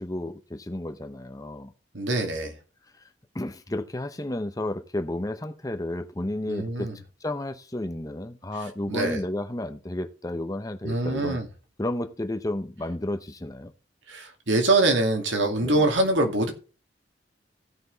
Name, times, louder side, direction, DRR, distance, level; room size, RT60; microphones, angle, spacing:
voice 1, 0.0-1.7 3.0-3.1 3.3-11.4 11.8-13.7 15.6-15.9, left 1 dB, 20° left, 0.8 m, -32 dB
voice 2, 1.9-2.6 6.5-7.0 8.9-9.2 10.8-11.5 14.1-16.5, right 2 dB, 75° right, 2.4 m, -24 dB
15.5 x 6.0 x 4.0 m
head